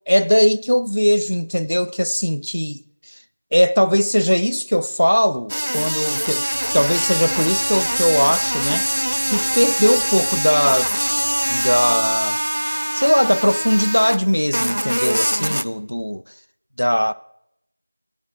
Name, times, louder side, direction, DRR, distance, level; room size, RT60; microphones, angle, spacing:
voice 1, 0.1-2.8 3.1-3.2 3.5-6.4 6.7-10.9 11.5-12.4 12.9-16.2 16.8-17.1, equal, 90° left, 0.4 m, -19 dB
sound 1, 5.5-14.2 14.5-15.6, equal, 65° right, 0.5 m, -23 dB
sound 2, 6.5-11.9, equal, 35° left, 1.7 m, -43 dB
11.0 x 7.2 x 6.3 m
figure-of-eight pair, 180°, 0 cm